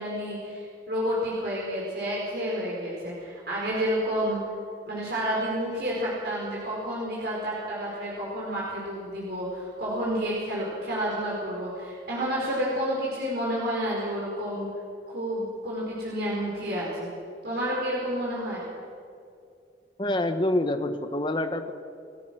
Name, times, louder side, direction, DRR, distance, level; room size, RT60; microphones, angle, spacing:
voice 1, 0.0-4.4 4.9-14.7 15.1-17.1 17.4-18.6, equal, 60° right, -5 dB, 4.9 m, -30 dB
voice 2, 20.0-21.7, left 1 dB, 25° left, 8 dB, 1.2 m, -26 dB
28.5 x 16.0 x 6.4 m, 2.5 s
head